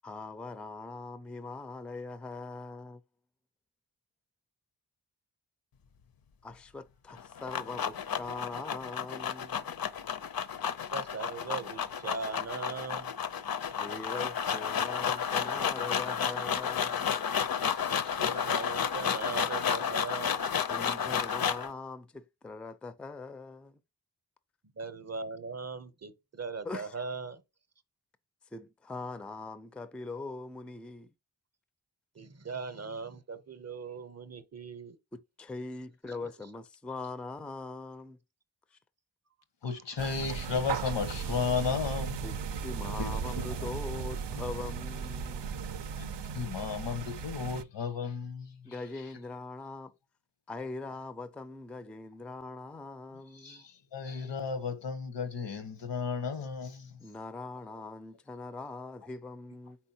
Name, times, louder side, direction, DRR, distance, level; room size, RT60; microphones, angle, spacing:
voice 1, 0.0-3.0 6.4-9.7 13.8-17.1 20.7-23.8 26.6-27.0 28.5-31.1 35.1-38.2 38.7-38.8 42.2-45.6 48.6-49.9 50.5-53.6 57.0-59.8, left 3 dB, 5° left, 0.3 m, -42 dB
sound 1, 7.1-21.7, left 7 dB, 60° left, 0.5 m, -32 dB
voice 2, 10.9-13.1 17.9-20.4 24.7-27.4 32.1-35.0 36.2-36.3, right 4 dB, 40° right, 0.6 m, -39 dB
voice 3, 39.6-42.3 43.0-43.7 46.0-48.6 53.4-56.9, left 5 dB, 85° left, 0.9 m, -34 dB
sound 2, 40.0-47.6, right 6 dB, 80° right, 0.5 m, -36 dB
4.4 x 4.0 x 2.7 m
wide cardioid pair, 55°, 42 cm